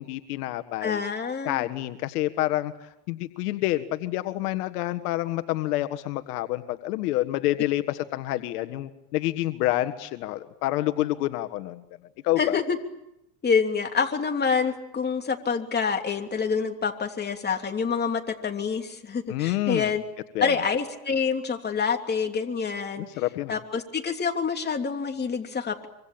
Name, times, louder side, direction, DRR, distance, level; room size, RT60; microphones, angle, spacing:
voice 1, 0.0-1.0 1.4-11.8 12.2-12.6 19.3-19.9 20.3-20.6 23.0-23.6, left 16 dB, 80° left, 10 dB, 1.7 m, -28 dB
voice 2, 0.8-1.7 12.4-12.8 13.4-20.0 20.4-23.0 23.5-25.9, left 5 dB, 20° left, 4 dB, 3.2 m, -27 dB
25.5 x 25.5 x 8.7 m, 0.83 s
supercardioid pair, 115°, 46 cm